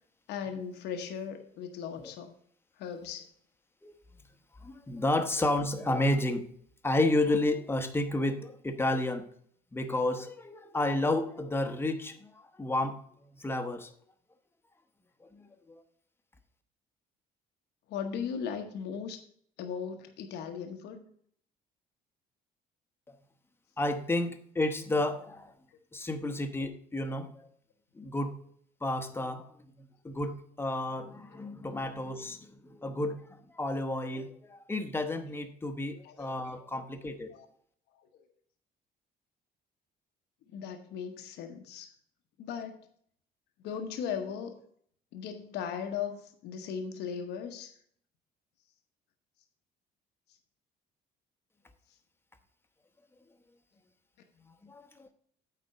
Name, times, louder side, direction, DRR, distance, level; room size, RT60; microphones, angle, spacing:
voice 1, 0.3-2.3 2.8-3.3 17.9-19.2 19.6-21.0 35.8-36.8 37.3-37.5 40.5-41.9 42.4-42.8 43.6-44.6 45.1-47.7, left 7 dB, 80° left, 5 dB, 1.0 m, -38 dB
voice 2, 4.6-6.5 6.8-9.2 9.7-12.3 12.6-13.0 13.4-13.9 15.7-15.8 23.8-25.5 25.9-27.3 28.0-28.4 28.8-29.5 30.0-33.2 33.6-37.3 54.7-55.1, left 2 dB, 15° left, 7 dB, 1.0 m, -31 dB
8.7 x 4.2 x 6.5 m, 0.62 s
cardioid pair, 110°, 17 cm